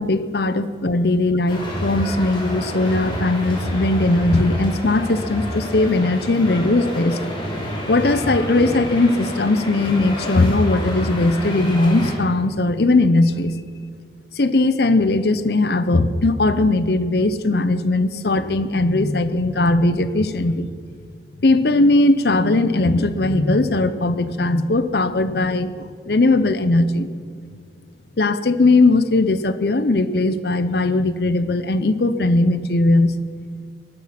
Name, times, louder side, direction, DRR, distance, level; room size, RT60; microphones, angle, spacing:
voice 1, 0.0-7.2 7.9-13.6 14.3-20.7 21.4-25.7 26.1-27.1 28.2-33.1, left 2 dB, 60° left, 12 dB, 0.7 m, -19 dB
sound 1, 1.5-12.1, equal, 25° left, 3.4 m, -29 dB
19.0 x 11.5 x 5.9 m, 2.1 s
head